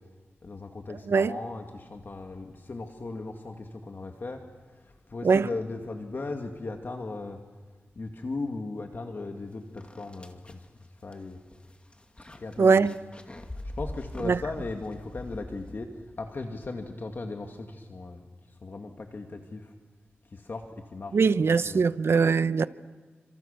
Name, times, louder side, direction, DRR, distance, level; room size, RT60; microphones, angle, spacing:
voice 1, 0.4-4.4 4.7-7.4 8.0-10.7 11.0-11.4 12.4-12.9 13.6-19.7 20.3-21.8, left 3 dB, 50° left, 2.1 m, -37 dB
sound 1, 9.3-9.4 9.8-16.1, left 1 dB, 25° left, 2.4 m, -43 dB
voice 2, 12.6-12.9 14.2-14.4 21.1-22.7, right 5 dB, 70° right, 0.9 m, -21 dB
29.0 x 26.5 x 6.8 m
wide cardioid pair, 75°, 4 cm